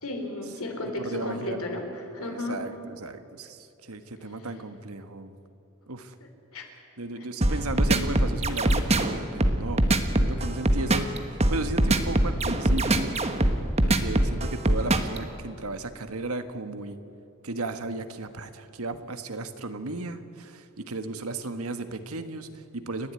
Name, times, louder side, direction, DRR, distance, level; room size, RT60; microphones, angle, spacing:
voice 1, 0.0-2.6 6.2-6.7 7.2-7.6, left 2 dB, 90° left, 4 dB, 4.2 m, -34 dB
voice 2, 0.8-1.6 2.2-5.3 5.9-6.1 7.0-9.9 10.2-13.2 13.8-17.0 17.4-23.1, right 2 dB, 90° right, 9 dB, 1.5 m, -35 dB
sound 1, 7.4-15.2, right 1 dB, 30° right, 1.3 m, -22 dB
29.5 x 12.0 x 9.7 m, 2.8 s
head